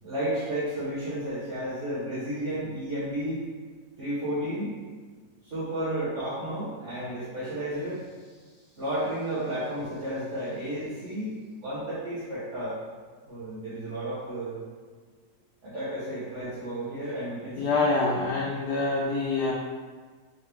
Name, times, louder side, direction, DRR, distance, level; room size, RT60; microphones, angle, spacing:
voice 1, 0.0-3.4 4.0-4.8 5.4-8.1 8.8-12.8 13.2-14.6 15.6-17.8, right 1 dB, 50° right, -12 dB, 1.3 m, -32 dB
voice 2, 17.6-19.5, left 3 dB, 80° left, -3 dB, 1.2 m, -26 dB
3.8 x 3.1 x 3.4 m, 1.5 s
omnidirectional pair, 1.7 m